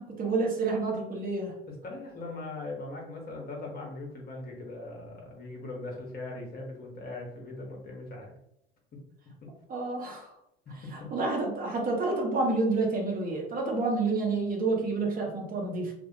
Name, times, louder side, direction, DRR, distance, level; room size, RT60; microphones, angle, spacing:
voice 1, 0.0-1.5 9.7-10.3 10.9-15.9, right 3 dB, 30° right, 0 dB, 0.8 m, -29 dB
voice 2, 1.7-8.3 10.7-11.1, left 2 dB, 30° left, -1 dB, 0.8 m, -40 dB
2.3 x 2.2 x 2.7 m, 0.78 s
figure-of-eight pair, 65°, 30 cm